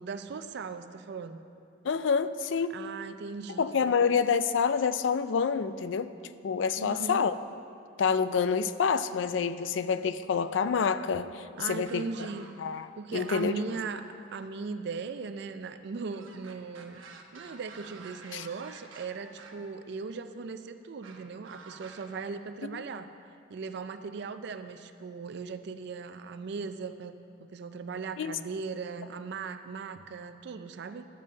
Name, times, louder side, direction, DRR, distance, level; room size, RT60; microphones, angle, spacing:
voice 1, 0.0-1.4 2.7-3.9 6.8-7.3 11.6-12.5 13.0-17.0 17.3-27.1 27.5-31.1, right 4 dB, 60° right, 10 dB, 0.4 m, -38 dB
voice 2, 1.8-2.7 3.6-6.1 6.4-7.4 8.0-12.0 12.6-13.6 18.3-18.5 22.6-22.8 28.2-28.3, left 6 dB, 70° left, 13 dB, 0.4 m, -27 dB
sound 1, 11.6-12.8 13.1-14.3 16.1-19.7 21.0-22.1, right 4 dB, 85° right, 0.9 m, -50 dB
12.0 x 5.4 x 7.5 m, 2.5 s
head